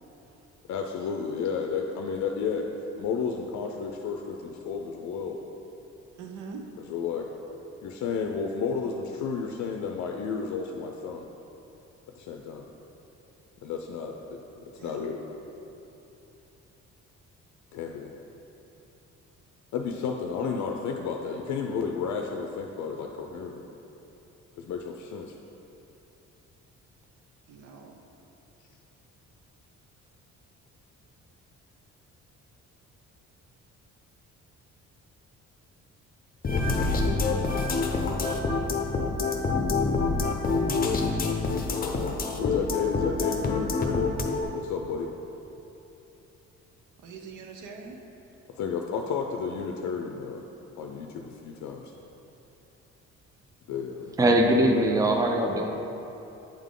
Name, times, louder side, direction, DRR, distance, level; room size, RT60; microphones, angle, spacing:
voice 1, 0.7-2.7 3.0-5.4 6.8-7.3 7.8-11.3 12.1-12.7 13.6-14.4 14.8-15.2 17.7-18.1 19.7-23.7 24.6-25.3 42.4-44.1 44.5-45.1 48.6-50.4 50.8-51.9 53.7-54.2, left 6 dB, 70° left, 2 dB, 0.5 m, -32 dB
voice 2, 6.1-6.7 14.8-15.1 27.5-27.9 47.0-48.0, right 5 dB, 85° right, 3 dB, 0.7 m, -43 dB
sound 1, 36.4-44.4, left 3 dB, 30° left, 0.7 m, -26 dB
voice 3, 54.2-55.7, right 1 dB, 10° right, 2 dB, 0.5 m, -21 dB
8.6 x 3.6 x 3.7 m, 3.0 s
cardioid pair, 90°, 30 cm